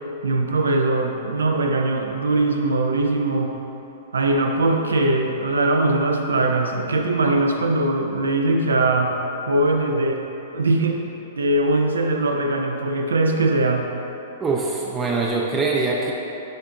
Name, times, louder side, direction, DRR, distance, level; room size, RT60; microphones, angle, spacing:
voice 1, 0.2-3.5 4.1-9.1 9.5-10.2 10.5-11.0 11.4-13.9, right 2 dB, 80° right, 3 dB, 0.4 m, -21 dB
voice 2, 14.4-16.1, right 3 dB, 20° right, -2 dB, 0.4 m, -23 dB
7.4 x 2.6 x 2.6 m, 3.0 s
hypercardioid pair, 110°, 0 cm